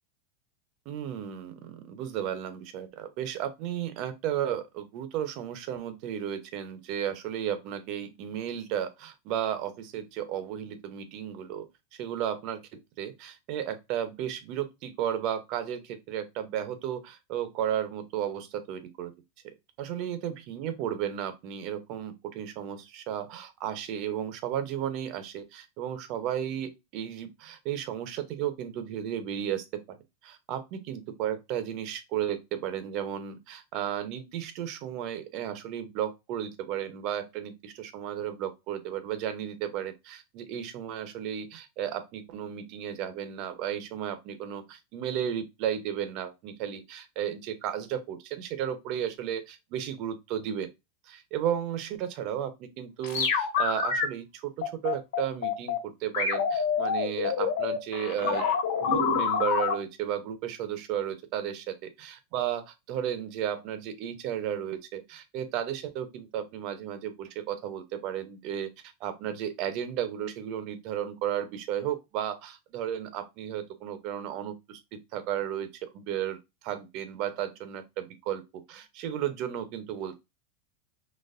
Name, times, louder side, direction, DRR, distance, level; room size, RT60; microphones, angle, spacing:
voice 1, 0.9-11.6 12.0-12.6 13.0-19.1 19.8-30.0 30.2-50.7 51.1-58.5 58.8-62.6 62.9-68.7 69.0-74.8 75.1-76.4 76.6-80.2, right 10 dB, 45° right, 0.8 m, -34 dB
sound 1, 53.0-54.1 54.6-55.8 56.1-59.7, left 6 dB, 85° left, 1.6 m, -27 dB
4.1 x 2.9 x 2.5 m
supercardioid pair, 150°, 0 cm